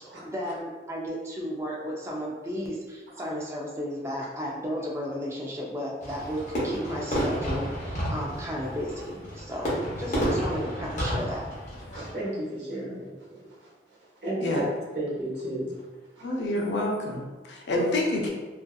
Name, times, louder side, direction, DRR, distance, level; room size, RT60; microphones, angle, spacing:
voice 1, 0.2-11.5, equal, 15° right, -3 dB, 0.3 m, -34 dB
Fireworks, 6.0-12.1, equal, 40° left, 0.8 m, -31 dB
voice 2, 11.9-14.7 14.9-15.8 16.1-16.3 16.5-16.7 17.7-17.8, right 1 dB, 85° right, -6 dB, 1.0 m, -34 dB
voice 3, 16.2-18.3, left 1 dB, 85° left, -1 dB, 0.5 m, -28 dB
2.6 x 2.4 x 2.2 m, 1.3 s
head